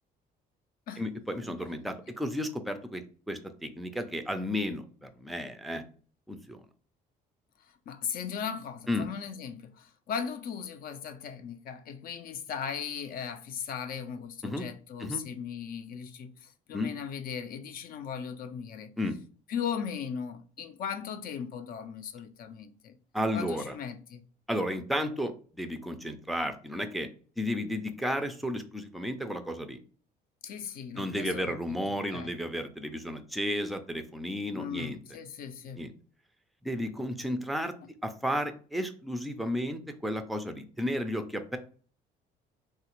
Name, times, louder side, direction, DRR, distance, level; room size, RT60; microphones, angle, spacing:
voice 1, 1.0-5.8 6.3-6.6 8.9-9.1 14.4-14.6 15.0-15.2 16.7-16.9 19.0-19.2 23.1-23.7 24.5-27.1 27.4-29.8 31.0-35.0 35.8-35.9 36.6-37.7 38.0-41.6, equal, ahead, 0.4 m, -33 dB
voice 2, 7.6-18.9 19.5-23.0 23.3-24.2 30.4-31.6 31.9-32.4 34.5-35.9, left 7 dB, 60° left, 0.5 m, -38 dB
3.3 x 2.4 x 2.9 m
cardioid pair, 110°, 17 cm